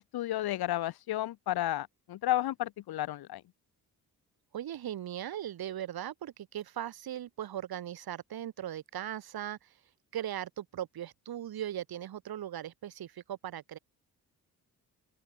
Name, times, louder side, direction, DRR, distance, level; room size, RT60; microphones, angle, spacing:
voice 1, 0.0-3.4, left 14 dB, 90° left, 3.0 m, -32 dB
voice 2, 4.5-9.7 10.1-13.8, right 11 dB, 80° right, 7.6 m, -39 dB
open air
cardioid pair, 85°, 36 cm